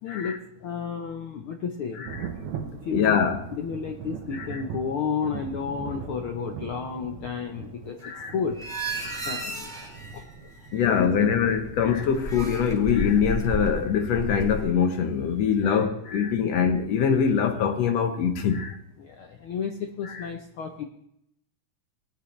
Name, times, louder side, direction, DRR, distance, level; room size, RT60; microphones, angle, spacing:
voice 1, 0.0-2.1 2.8-3.2 3.5-8.6 9.2-9.9 10.1-10.2 10.6-11.3 15.6-15.9 19.0-20.8, left 6 dB, 80° left, 1.2 m, -32 dB
Thunder, 2.1-13.5 14.8-14.9 15.4-15.5, right 7 dB, 80° right, 2.5 m, -41 dB
voice 2, 2.9-3.4 8.0-8.3 10.7-18.8 20.1-20.2, left 7 dB, 65° left, 1.9 m, -23 dB
sound 1, 8.6-11.2 11.5-14.7, right 1 dB, ahead, 0.9 m, -33 dB
18.5 x 10.0 x 3.2 m
omnidirectional pair, 3.5 m